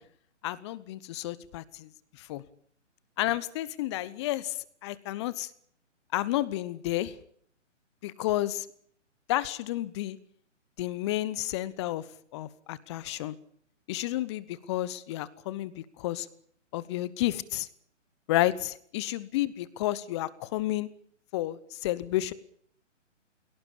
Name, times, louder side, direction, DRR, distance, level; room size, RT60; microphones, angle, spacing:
voice 1, 0.4-1.9 2.2-2.4 3.2-5.5 6.1-7.1 8.0-8.7 9.3-10.2 10.8-12.0 12.3-13.4 13.9-16.3 16.7-17.7 18.3-20.9 21.3-22.3, left 15 dB, 20° left, 19 dB, 0.9 m, -31 dB
29.0 x 18.0 x 6.9 m, 0.63 s
figure-of-eight pair, 135°, 38 cm